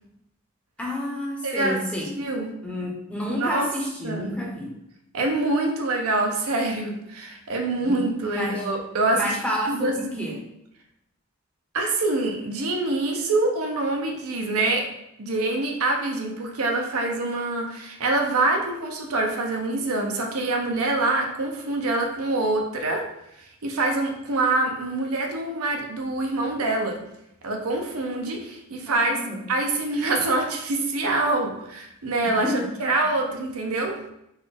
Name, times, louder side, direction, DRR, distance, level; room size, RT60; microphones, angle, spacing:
voice 1, 0.8-2.1 2.6-4.7 7.8-8.0 8.3-8.7 9.1-10.4 28.9-29.4 32.2-32.7, left 1 dB, 5° left, -2 dB, 0.7 m, -30 dB
voice 2, 1.4-1.8 2.2-2.5 3.3-3.7 4.0-4.3 5.1-9.4 9.7-10.3 11.7-14.9 15.2-23.0 23.4-27.0 27.4-29.2 29.5-32.5 32.8-34.0, right 2 dB, 75° right, 2 dB, 0.7 m, -25 dB
4.1 x 2.4 x 3.3 m, 0.82 s
head